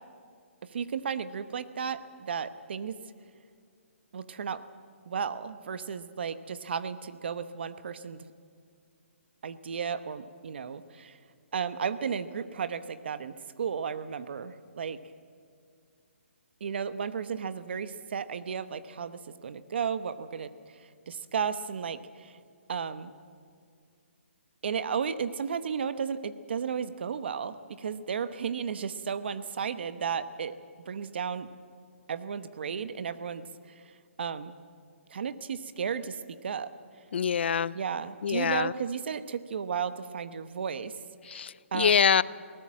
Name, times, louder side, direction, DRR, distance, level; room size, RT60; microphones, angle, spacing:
voice 1, 0.6-3.0 4.1-4.6 5.1-8.3 9.4-11.2 11.5-15.0 16.6-20.5 21.1-22.4 22.7-23.1 24.6-30.5 30.9-31.5 32.1-33.5 34.2-34.5 35.1-36.7 37.7-40.9 41.3-41.4 41.7-42.0, right 6 dB, 55° right, 13 dB, 1.1 m, -34 dB
voice 2, 37.1-37.7 38.2-38.7 41.3-42.2, left 7 dB, 55° left, 20 dB, 0.5 m, -25 dB
22.5 x 18.5 x 7.5 m, 2.2 s
hypercardioid pair, 165°, 7 cm